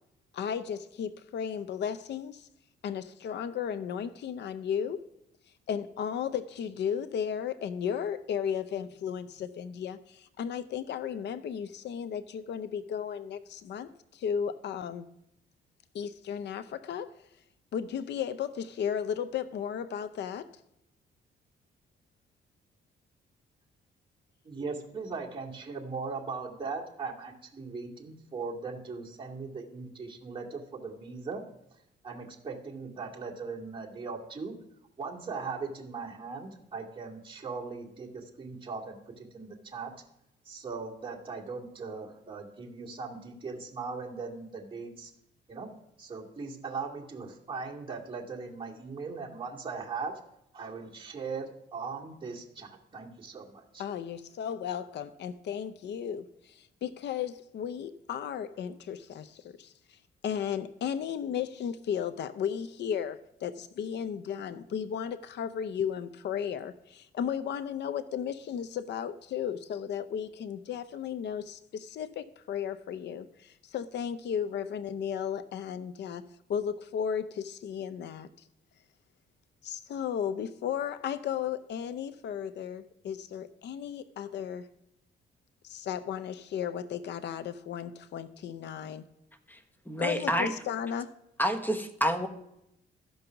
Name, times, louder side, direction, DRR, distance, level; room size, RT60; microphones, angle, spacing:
voice 1, 0.3-2.5 2.8-5.1 5.7-15.1 15.9-17.1 17.7-20.5 53.8-60.0 60.2-76.2 76.5-78.3 79.6-84.7 85.6-89.0 90.0-91.1, left 8 dB, 65° left, 12 dB, 0.6 m, -34 dB
voice 2, 24.4-31.4 32.0-34.5 35.0-39.9 40.4-45.1 45.5-45.7 46.0-50.2 50.5-53.8, right 4 dB, 25° right, -2 dB, 2.3 m, -39 dB
voice 3, 89.9-90.5 91.4-92.3, equal, 10° left, 7 dB, 1.2 m, -28 dB
13.5 x 5.4 x 5.8 m, 0.80 s
cardioid pair, 85°, 19 cm